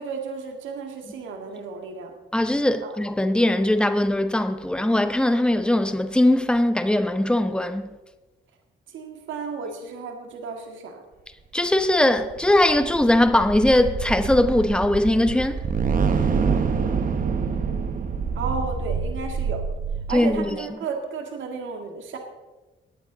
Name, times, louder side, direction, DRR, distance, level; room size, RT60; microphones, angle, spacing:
voice 1, 0.0-2.1 2.8-2.9 8.9-11.0 17.3-19.6 20.1-22.2, right 5 dB, 75° right, 2.0 m, -34 dB
voice 2, 2.3-7.8 11.5-15.6 20.1-20.4, left 1 dB, 5° left, 0.9 m, -20 dB
sound 1, 12.1-20.5, right 5 dB, 45° right, 1.2 m, -26 dB
20.0 x 8.8 x 4.0 m
cardioid pair, 90°, 20 cm